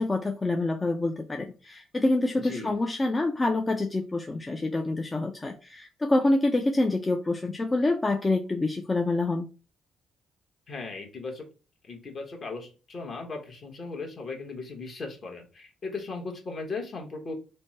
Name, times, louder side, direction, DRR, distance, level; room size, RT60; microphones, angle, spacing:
voice 1, 0.0-9.5, left 2 dB, 20° left, 0.4 m, -26 dB
voice 2, 2.4-2.7 10.7-11.4 11.9-17.3, left 3 dB, 50° left, 1.2 m, -37 dB
3.4 x 2.1 x 4.3 m
cardioid pair, 90°, 0 cm